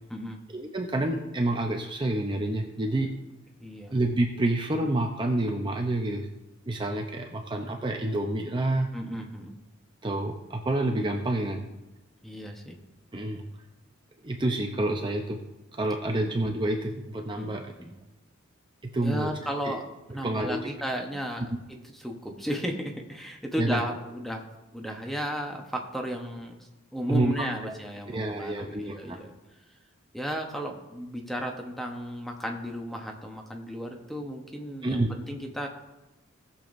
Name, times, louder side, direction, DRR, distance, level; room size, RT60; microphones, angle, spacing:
voice 1, 0.5-3.1 3.9-6.3 6.7-8.9 10.0-11.6 13.1-13.4 14.2-15.4 15.7-17.7 18.9-19.3 19.6-19.7 20.2-20.7 23.6-23.8 27.1-27.3 27.6-27.7 28.1-29.2 34.8-35.1, right 1 dB, 25° right, 2 dB, 0.6 m, -28 dB
voice 2, 3.6-3.9 8.9-9.6 12.2-12.8 16.2-16.3 17.4-17.9 19.0-19.8 20.1-24.4 24.7-29.3 30.1-35.7, equal, ahead, 2 dB, 1.0 m, -34 dB
18.5 x 7.0 x 2.6 m, 1.0 s
head